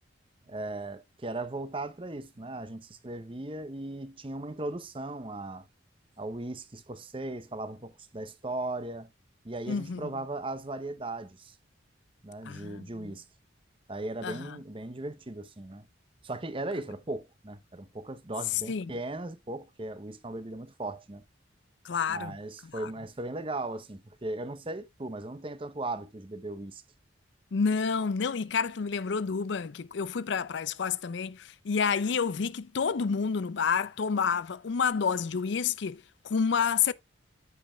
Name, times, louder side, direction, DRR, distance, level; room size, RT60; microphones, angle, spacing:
voice 1, 0.5-5.7 6.2-9.1 9.4-11.6 12.2-13.2 13.9-15.8 16.2-21.2 22.1-26.8, right 2 dB, 25° right, 0.7 m, -37 dB
voice 2, 9.7-10.2 12.5-13.1 14.2-14.6 18.7-18.9 21.8-22.4 22.7-22.9 27.5-36.9, left 6 dB, 60° left, 0.5 m, -29 dB
14.0 x 5.2 x 2.3 m
head